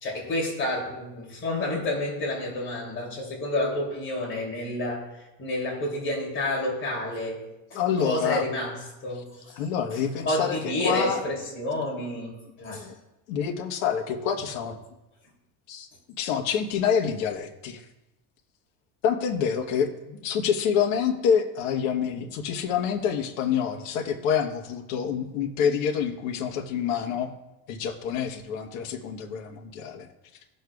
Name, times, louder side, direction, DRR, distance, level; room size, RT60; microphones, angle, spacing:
voice 1, 0.0-5.1 5.4-7.4 7.7-9.6 9.9-10.0 10.2-12.3 12.6-12.9, left 1 dB, 30° left, -3 dB, 2.8 m, -29 dB
voice 2, 7.7-8.4 9.6-11.2 12.6-12.9 13.3-14.8 15.7-15.9 16.2-17.8 19.0-27.3 27.7-30.1, left 7 dB, 70° left, 3 dB, 1.2 m, -27 dB
18.5 x 6.5 x 2.4 m, 0.96 s
cardioid pair, 165°, 41 cm